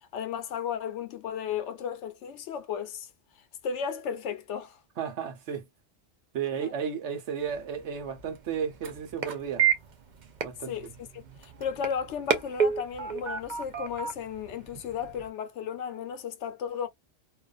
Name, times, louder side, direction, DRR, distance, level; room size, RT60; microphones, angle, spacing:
voice 1, 0.1-3.1 3.6-4.8 6.6-6.7 10.7-16.9, left 7 dB, 75° left, 0.9 m, -34 dB
voice 2, 5.0-5.6 6.3-9.7 10.4-10.7, right 7 dB, 75° right, 1.1 m, -33 dB
sound 1, 7.4-15.3, right 7 dB, 50° right, 0.6 m, -32 dB
2.5 x 2.4 x 2.3 m
omnidirectional pair, 1.2 m